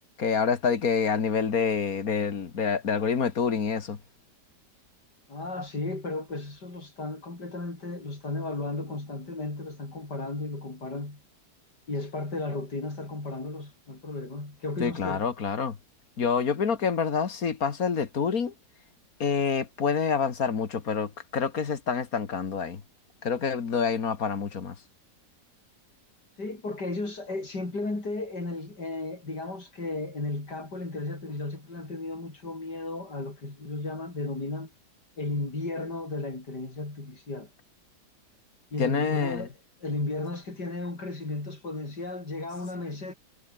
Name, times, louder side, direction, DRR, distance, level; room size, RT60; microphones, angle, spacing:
voice 1, 0.2-4.0 14.8-15.8 16.2-18.5 19.2-22.8 23.2-24.8 38.8-39.5, left 6 dB, 55° left, 2.2 m, -27 dB
voice 2, 5.3-11.2 11.9-15.2 26.4-34.7 35.2-37.5 38.7-39.5 39.8-43.1, left 2 dB, 75° left, 6.7 m, -34 dB
omnidirectional pair, 1.8 m